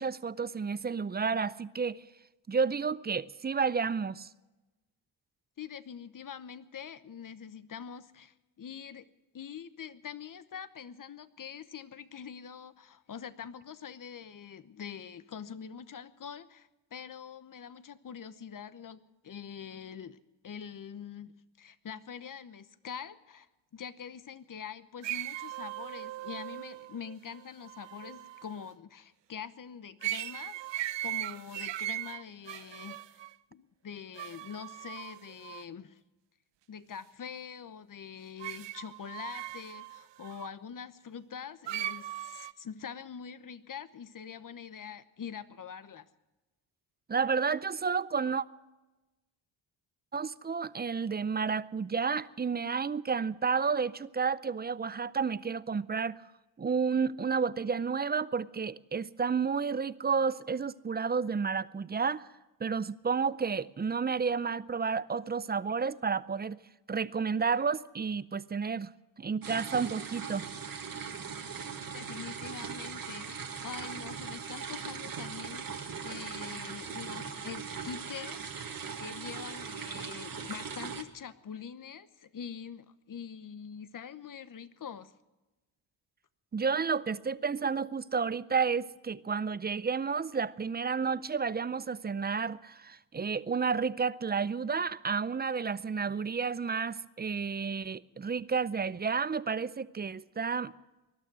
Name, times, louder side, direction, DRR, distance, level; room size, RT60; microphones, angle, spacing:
voice 1, 0.0-2.0 2.5-4.3 47.1-48.4 50.1-56.2 56.6-62.3 62.6-66.6 66.9-68.9 69.2-70.5 86.5-100.7, right 5 dB, 20° right, 0.5 m, -31 dB
voice 2, 5.6-9.0 9.3-21.3 21.6-23.5 23.7-36.0 36.7-46.1 71.9-85.1, left 7 dB, 40° left, 1.0 m, -44 dB
sound 1, 25.0-28.6 30.0-33.3 34.2-35.6 38.4-40.5 41.7-42.5, right 14 dB, 65° right, 0.7 m, -39 dB
sound 2, 69.4-81.0, right 6 dB, 45° right, 1.7 m, -40 dB
20.0 x 12.0 x 6.1 m
cardioid pair, 90°, 47 cm